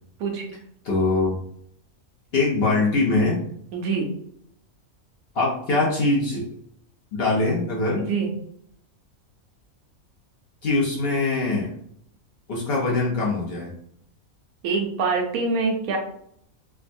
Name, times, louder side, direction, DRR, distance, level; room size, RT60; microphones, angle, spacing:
voice 1, 0.8-1.4 2.3-3.4 5.3-6.5 7.1-8.1 10.6-11.7 12.5-13.7, left 2 dB, 55° left, -3 dB, 0.7 m, -22 dB
voice 2, 3.7-4.1 8.0-8.3 14.6-16.0, right 4 dB, 80° right, 2 dB, 1.1 m, -25 dB
3.4 x 2.0 x 2.5 m, 0.69 s
omnidirectional pair, 1.5 m